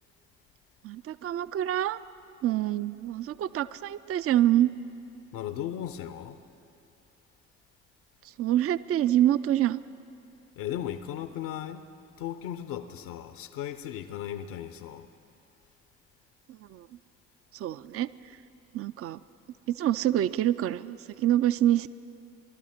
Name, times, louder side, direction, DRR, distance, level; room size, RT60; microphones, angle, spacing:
voice 1, 0.8-2.0 2.4-4.7 8.4-9.8 16.5-16.9 17.5-18.1 18.7-19.2 19.7-21.9, right 12 dB, 40° right, 0.4 m, -26 dB
voice 2, 5.3-6.4 10.6-11.9 12.2-15.1, left 10 dB, 65° left, 0.7 m, -36 dB
20.0 x 12.0 x 4.4 m
figure-of-eight pair, 40°, 36 cm